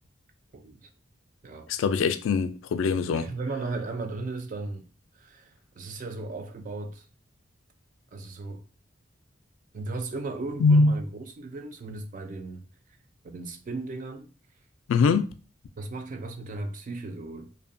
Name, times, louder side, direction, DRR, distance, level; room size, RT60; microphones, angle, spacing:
voice 1, 0.5-0.9 1.4-1.7 3.1-4.9 5.1-7.1 8.1-8.6 9.7-12.6 13.2-14.3 15.8-17.5, right 3 dB, 40° right, 0.3 m, -36 dB
voice 2, 1.7-3.3 10.6-10.9 14.9-15.3, left 4 dB, 80° left, 0.3 m, -22 dB
2.7 x 2.1 x 2.5 m
head